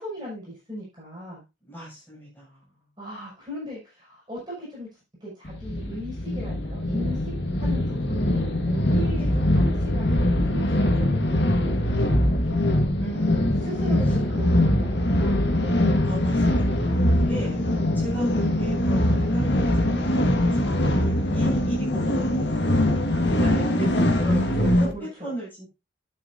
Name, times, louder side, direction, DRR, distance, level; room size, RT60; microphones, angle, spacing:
voice 1, 0.0-1.4 3.0-4.9 5.2-7.3 7.6-12.7 13.6-15.8 17.5-17.6 21.2-21.4 23.4-23.6 24.2-25.3, left 1 dB, 20° right, -6 dB, 6.5 m, -37 dB
voice 2, 1.7-2.6 9.1-9.4 13.0-13.8 16.0-17.6 17.9-24.3 24.7-25.7, right 1 dB, 10° left, -7 dB, 7.6 m, -36 dB
sound 1, 5.4-24.9, left 1 dB, 65° left, 1.7 m, -22 dB
11.0 x 9.1 x 2.7 m, 0.24 s
head